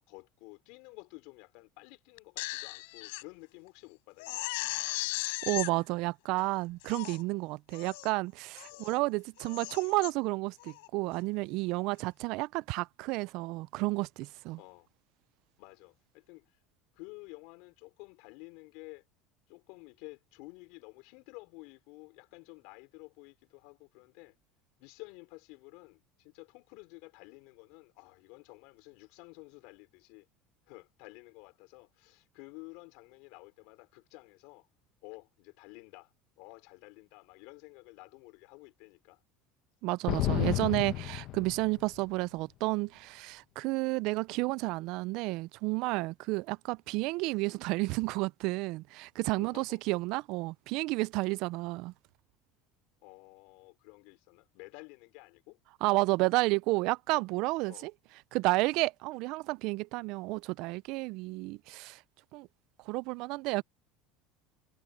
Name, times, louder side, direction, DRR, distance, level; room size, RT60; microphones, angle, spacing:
voice 1, 0.0-4.4 8.7-8.9 14.6-14.9 15.6-16.5 16.9-19.0 19.5-24.4 24.8-30.3 30.7-34.7 35.0-39.2 49.3-49.8 53.0-55.6 57.7-57.9, left 27 dB, 65° left, 5.1 m, -52 dB
Crying sobbing, 2.2-3.2 3.7-3.8 4.2-5.7 6.4-6.5 6.8-7.2 7.7-8.1 8.5-9.0 9.4-10.1 10.6-10.9, left 25 dB, 90° left, 4.5 m, -37 dB
voice 2, 5.4-14.6 39.8-51.9 55.8-57.9 58.3-62.0 62.3-62.5 62.9-63.6, right 23 dB, 55° right, 0.3 m, -31 dB
sound 1, 40.1-42.0, left 16 dB, 45° left, 0.9 m, -31 dB
cardioid pair, 155°, 0 cm